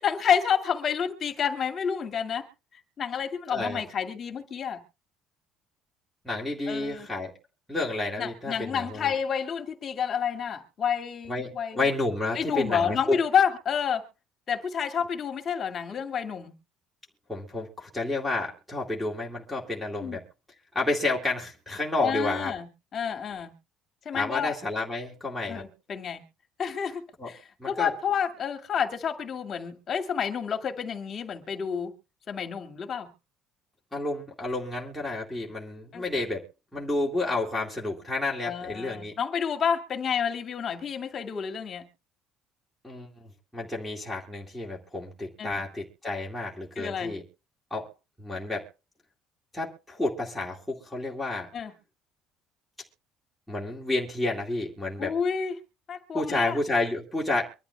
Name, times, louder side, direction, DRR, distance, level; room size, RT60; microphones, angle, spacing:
voice 1, 0.0-2.5 2.7-4.8 6.7-7.1 8.2-11.8 12.4-14.1 14.5-16.5 20.0-20.2 22.0-23.5 24.1-24.5 25.5-26.2 26.6-31.9 32.3-33.1 35.9-36.0 38.4-41.8 45.4-45.6 46.8-47.1 51.5-51.7 55.0-55.5 55.9-56.6, left 7 dB, 30° left, 2.1 m, -29 dB
voice 2, 3.5-3.8 6.2-7.3 7.7-9.1 11.3-13.2 17.3-20.2 20.7-22.5 24.1-25.6 27.2-27.3 27.6-27.9 33.9-36.5 36.7-39.2 42.8-47.2 47.7-47.9 48.2-48.6 49.5-51.5 53.5-55.1 56.1-57.5, left 2 dB, ahead, 2.4 m, -30 dB
24.0 x 12.5 x 2.3 m
cardioid pair, 165°, 0 cm